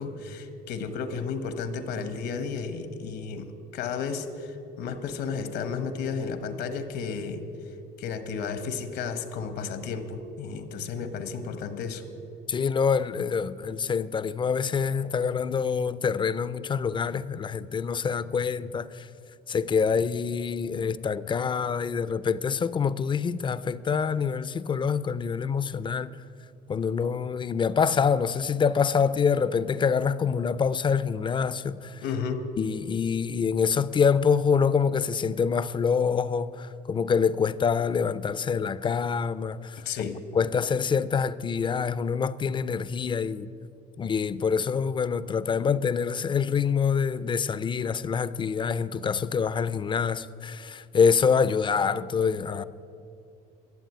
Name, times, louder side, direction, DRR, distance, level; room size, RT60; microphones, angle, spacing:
voice 1, 0.0-7.4 8.0-12.0 32.0-32.4 39.8-40.2, left 5 dB, 80° left, 1.2 m, -33 dB
voice 2, 12.5-19.1 19.5-26.2 26.7-32.0 32.6-43.5 44.0-52.6, left 6 dB, 30° left, 0.4 m, -26 dB
13.0 x 7.4 x 9.2 m
cardioid pair, 110°, 17 cm